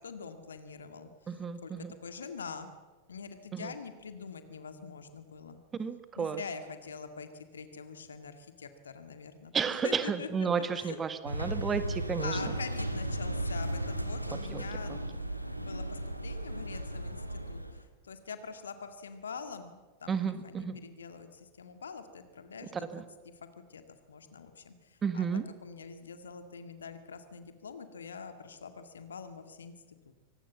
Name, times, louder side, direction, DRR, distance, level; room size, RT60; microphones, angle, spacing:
voice 1, 0.0-1.4 1.6-1.7 2.0-2.7 3.1-5.6 6.2-11.0 12.2-15.0 15.5-23.0 23.6-23.8 24.1-25.3 25.6-29.7 30.1-30.2, left 5 dB, 70° left, 9 dB, 2.0 m, -44 dB
voice 2, 1.3-1.9 3.5-3.7 5.8-6.4 9.5-12.5 14.3-14.6 14.9-15.0 20.1-20.8 22.9-23.0 25.0-25.4, right 6 dB, 20° right, 12 dB, 1.5 m, -32 dB
sound 1, 11.3-17.8, right 1 dB, 90° right, 1.6 m, -35 dB
24.5 x 19.0 x 7.3 m, 1.3 s
figure-of-eight pair, 90°, 0 cm